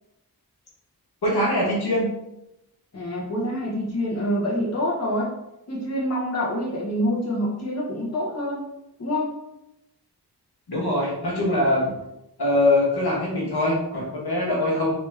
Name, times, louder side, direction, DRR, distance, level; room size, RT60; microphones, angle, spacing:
voice 1, 1.2-2.1 10.7-11.9 12.4-14.9, left 1 dB, 75° left, -4 dB, 1.4 m, -22 dB
voice 2, 2.9-5.4 5.7-8.7 9.0-9.3, equal, 40° left, -5 dB, 1.1 m, -26 dB
3.4 x 2.9 x 3.4 m, 0.88 s
cardioid pair, 50°, 39 cm